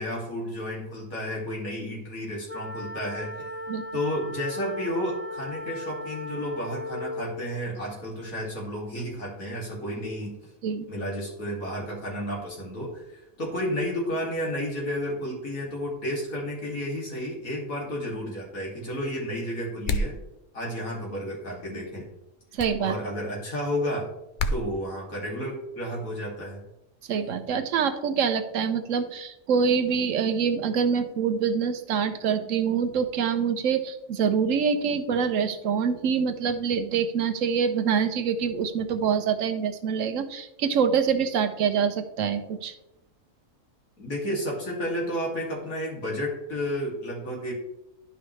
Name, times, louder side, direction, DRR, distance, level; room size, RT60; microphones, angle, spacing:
voice 1, 0.0-3.6 3.9-10.3 10.9-20.2 20.5-22.0 22.8-24.1 24.5-26.6 44.0-47.5, equal, 85° left, -3 dB, 3.0 m, -32 dB
sound 1, 2.5-7.4, left 2 dB, 30° left, 1.0 m, -36 dB
sound 2, 19.8-20.2 22.6-22.8 24.4-24.6, left 2 dB, 60° left, 0.5 m, -26 dB
voice 2, 22.5-22.9 27.1-42.7, right 6 dB, 70° right, 10 dB, 1.0 m, -25 dB
11.0 x 5.4 x 3.2 m, 0.89 s
omnidirectional pair, 1.4 m